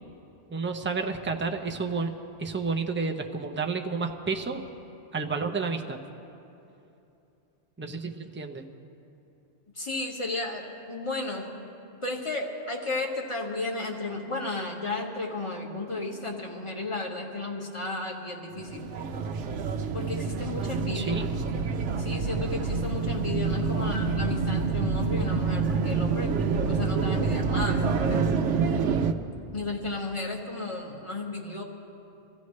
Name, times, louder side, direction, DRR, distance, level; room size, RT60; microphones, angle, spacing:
voice 1, 0.5-2.1 2.4-4.6 5.1-6.0 7.8-8.6 20.9-21.3 23.7-24.0, right 4 dB, 15° right, 4 dB, 0.5 m, -31 dB
voice 2, 9.7-11.5 12.0-18.9 19.9-21.3 22.0-26.3 26.7-28.3 29.5-31.6, left 2 dB, 25° left, -1 dB, 1.6 m, -33 dB
sound 1, 18.6-29.1, right 5 dB, 80° right, 1.0 m, -27 dB
25.0 x 15.0 x 3.2 m, 2.8 s
omnidirectional pair, 1.2 m